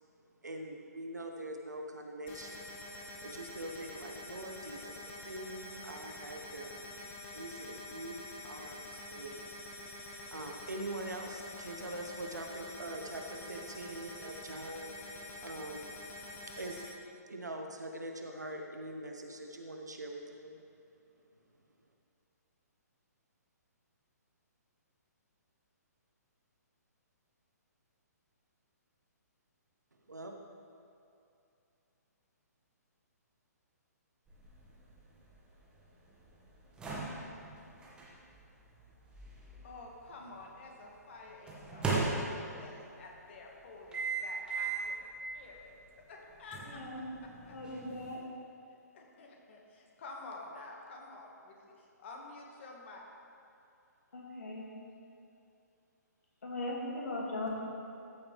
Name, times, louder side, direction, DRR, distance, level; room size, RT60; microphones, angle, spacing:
voice 1, 0.4-9.6 10.0-15.9 16.5-16.8 17.3-20.6 30.1-30.4, right 1 dB, 80° right, 3 dB, 1.1 m, -44 dB
sound 1, 2.3-16.9, left 2 dB, 20° left, 1.0 m, -47 dB
sound 2, 34.3-40.4 41.5-42.8 43.9-45.0 45.4-45.6 46.5-48.1, right 3 dB, 10° right, 1.6 m, -38 dB
voice 2, 39.6-45.1 45.3-45.7 46.1-47.6 48.9-53.0, left 3 dB, 45° left, 0 dB, 1.7 m, -50 dB
voice 3, 46.7-47.0 47.5-48.2 54.1-54.7 56.4-57.6, left 2 dB, 60° left, -2 dB, 2.3 m, -38 dB
14.0 x 7.1 x 3.3 m, 2.7 s
figure-of-eight pair, 130°, 9 cm